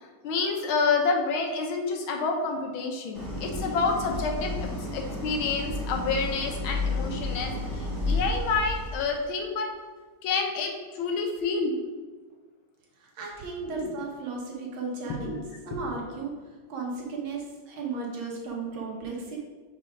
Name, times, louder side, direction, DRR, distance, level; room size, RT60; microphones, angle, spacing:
voice 1, 0.2-4.5 4.9-7.5 8.1-9.7 10.2-11.8 13.7-13.9 15.1-15.4 15.7-15.9, left 4 dB, 80° left, 2 dB, 1.7 m, -28 dB
Idling, 3.1-9.2, left 2 dB, 10° left, 1.8 m, -31 dB
voice 2, 13.2-15.4 15.7-16.3 16.7-19.4, right 4 dB, 75° right, -1 dB, 1.9 m, -35 dB
5.0 x 4.2 x 4.9 m, 1.3 s
omnidirectional pair, 2.2 m